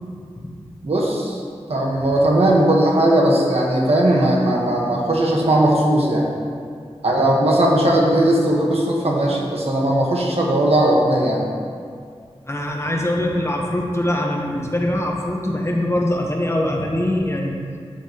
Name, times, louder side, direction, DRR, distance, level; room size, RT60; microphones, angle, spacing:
voice 1, 0.8-1.4 1.7-6.3 7.0-11.5, right 1 dB, 70° right, -2 dB, 1.3 m, -18 dB
voice 2, 12.5-17.6, left 1 dB, 25° left, 0 dB, 1.1 m, -22 dB
13.0 x 5.7 x 3.0 m, 2.2 s
wide cardioid pair, 70°, 11 cm